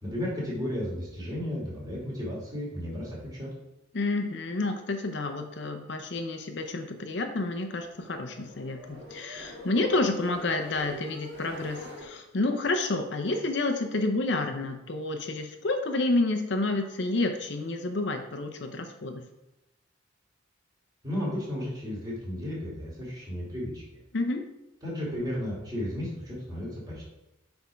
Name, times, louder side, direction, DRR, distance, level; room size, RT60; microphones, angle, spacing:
voice 1, 0.0-3.5 21.0-24.0 24.8-27.1, left 1 dB, 20° right, -5 dB, 2.6 m, -34 dB
voice 2, 3.9-19.2 24.1-24.5, left 2 dB, 55° left, 5 dB, 0.6 m, -29 dB
sound 1, 7.4-12.1, left 1 dB, 50° right, 1.6 m, -44 dB
8.2 x 3.6 x 5.1 m, 0.93 s
head